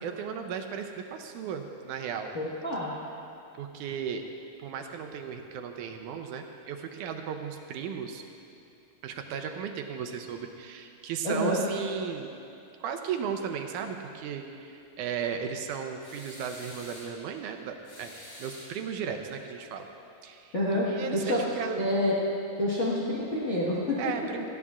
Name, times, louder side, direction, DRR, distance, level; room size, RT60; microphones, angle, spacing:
voice 1, 0.0-2.3 3.6-4.2 4.6-8.2 9.0-12.3 12.8-18.1 18.4-19.9 20.2-21.8 24.0-24.5, right 7 dB, 85° right, 5 dB, 2.1 m, -35 dB
voice 2, 2.3-2.9 11.2-11.6 20.5-20.9 21.1-21.4 21.8-22.2 22.6-24.1, left 1 dB, 45° left, -8 dB, 0.9 m, -27 dB
sound 1, 16.0-17.2 17.8-19.1, left 1 dB, 80° left, 4.9 m, -47 dB
18.0 x 14.5 x 2.4 m, 2.7 s
omnidirectional pair, 3.6 m